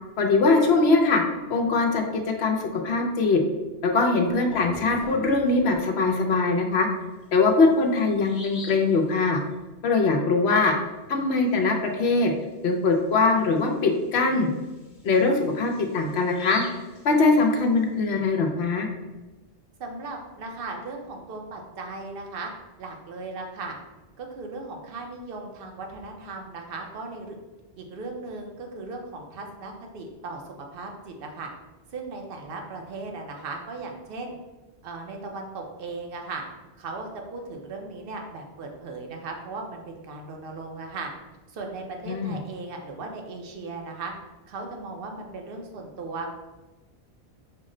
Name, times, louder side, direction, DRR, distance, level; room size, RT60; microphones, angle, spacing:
voice 1, 0.2-1.2 1.5-3.4 3.8-6.9 7.3-9.4 9.8-10.7 11.1-12.3 12.6-14.5 15.0-16.6 17.0-18.9 42.1-42.4, left 3 dB, 70° left, 3 dB, 0.9 m, -22 dB
Bird vocalization bird call bird song, 4.3-5.8 7.2-7.3 7.8-7.9 8.2-8.9 12.4-12.5 12.9-13.0 13.6-17.8, left 1 dB, 45° left, 1.0 m, -43 dB
voice 2, 19.8-22.5 22.8-23.8 24.2-27.4 27.8-30.4 30.7-31.5 31.9-34.4 34.8-36.4 36.8-41.1 41.5-44.1 44.5-46.3, right 3 dB, 60° right, 2 dB, 0.8 m, -37 dB
5.7 x 2.1 x 3.7 m, 1.1 s
omnidirectional pair, 1.1 m